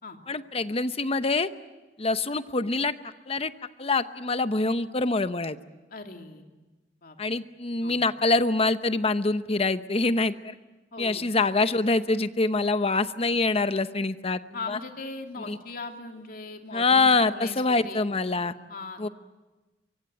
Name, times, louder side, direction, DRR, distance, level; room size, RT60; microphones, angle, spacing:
voice 1, 0.3-1.5 2.0-3.5 3.8-5.6 7.2-10.5 11.0-14.4 14.7-14.8 15.5-15.6 16.7-18.5 19.0-19.1, left 3 dB, 35° left, 12 dB, 0.9 m, -25 dB
voice 2, 5.9-6.5 7.0-7.2 7.8-8.0 10.9-11.3 14.5-18.0 18.7-19.1, left 3 dB, 55° left, 4 dB, 2.8 m, -39 dB
24.5 x 24.0 x 9.1 m, 1.2 s
head